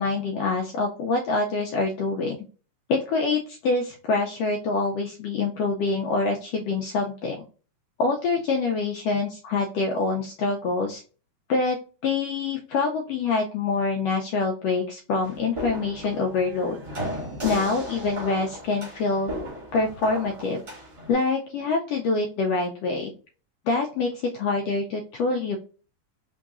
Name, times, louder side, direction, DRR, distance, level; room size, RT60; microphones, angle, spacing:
voice 1, 0.0-2.4 2.9-7.4 8.0-11.0 11.5-11.8 12.0-16.8 17.4-19.3 19.7-20.6 21.1-23.1 23.7-25.6, left 3 dB, 90° left, 1 dB, 1.4 m, -25 dB
sound 1, 15.2-21.1, equal, 25° right, 1.4 m, -35 dB
3.9 x 3.6 x 2.4 m, 0.37 s
omnidirectional pair, 3.5 m